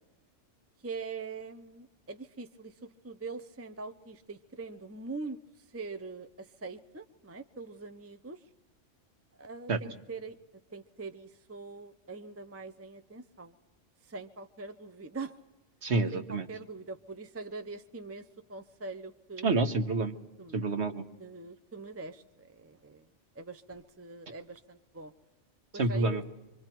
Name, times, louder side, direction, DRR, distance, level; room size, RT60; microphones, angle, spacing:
voice 1, 0.8-5.4 5.7-8.4 9.4-10.4 10.7-13.5 14.0-15.4 16.1-19.6 20.4-20.6 21.2-23.1 23.4-25.1 25.7-26.3, right 3 dB, 20° right, 9 dB, 0.4 m, -43 dB
voice 2, 15.8-16.5 19.4-20.1 20.5-21.0 25.8-26.2, right 3 dB, 65° right, 7 dB, 1.4 m, -28 dB
24.5 x 24.5 x 4.5 m, 1.0 s
omnidirectional pair, 1.2 m